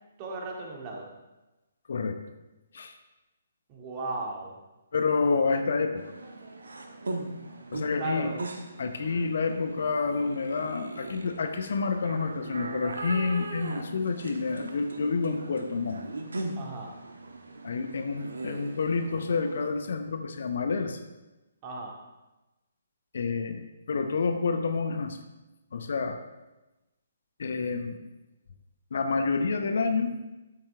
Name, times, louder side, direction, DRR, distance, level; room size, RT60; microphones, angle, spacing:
voice 1, 0.2-1.1 3.7-4.6 7.5-7.6 8.0-8.4 16.6-16.9 21.6-21.9, right 2 dB, 25° right, -1 dB, 2.3 m, -35 dB
voice 2, 4.9-6.1 7.7-8.3 8.8-16.0 17.6-21.1 23.1-25.2 25.7-26.2 27.4-28.0 28.9-30.2, left 4 dB, 55° left, 7 dB, 0.9 m, -28 dB
sound 1, 6.0-19.7, right 2 dB, 65° right, 1.4 m, -39 dB
13.0 x 8.7 x 3.5 m, 1.0 s
figure-of-eight pair, 135°, 0 cm